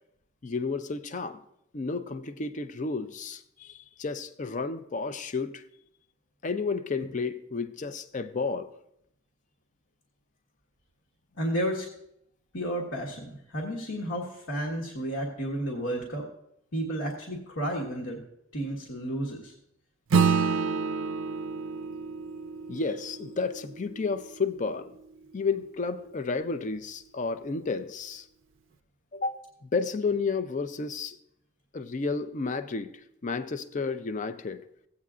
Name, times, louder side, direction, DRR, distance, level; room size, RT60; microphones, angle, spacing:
voice 1, 0.4-1.4 1.7-5.6 6.4-8.7 22.7-25.0 25.3-28.3 29.1-31.2 31.7-32.9 33.2-34.6, left 4 dB, 35° left, 0.5 m, -32 dB
voice 2, 11.4-11.9 12.5-16.3 16.7-18.2 18.5-19.5, right 1 dB, 70° left, 1.4 m, -32 dB
Acoustic guitar / Strum, 20.1-24.9, right 5 dB, 65° right, 0.4 m, -29 dB
16.5 x 8.5 x 2.5 m
head